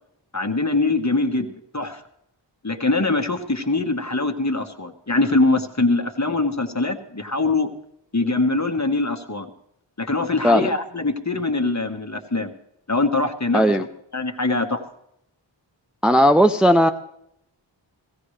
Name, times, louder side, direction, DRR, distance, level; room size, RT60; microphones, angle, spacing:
voice 1, 0.3-2.0 2.6-7.7 8.1-9.5 10.0-12.5 12.9-13.6 14.1-14.8, left 3 dB, 35° left, 5 dB, 1.5 m, -23 dB
voice 2, 13.5-13.8 16.0-16.9, equal, ahead, 7 dB, 0.5 m, -16 dB
17.0 x 16.5 x 3.3 m, 0.77 s
wide cardioid pair, 40°, 47 cm